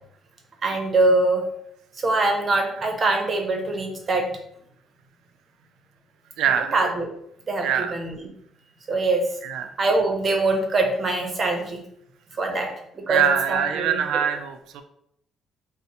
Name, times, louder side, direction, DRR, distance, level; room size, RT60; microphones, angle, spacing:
voice 1, 0.6-1.4 2.0-4.3 6.6-7.1 7.5-8.1 8.9-9.2 9.8-11.8 12.4-13.2 13.5-14.0, right 2 dB, 35° right, 2 dB, 0.7 m, -23 dB
voice 2, 6.4-6.7 7.6-8.0 9.4-9.8 13.1-14.8, right 8 dB, 85° right, 8 dB, 0.4 m, -23 dB
4.1 x 2.0 x 2.8 m, 0.73 s
cardioid pair, 125°, 0 cm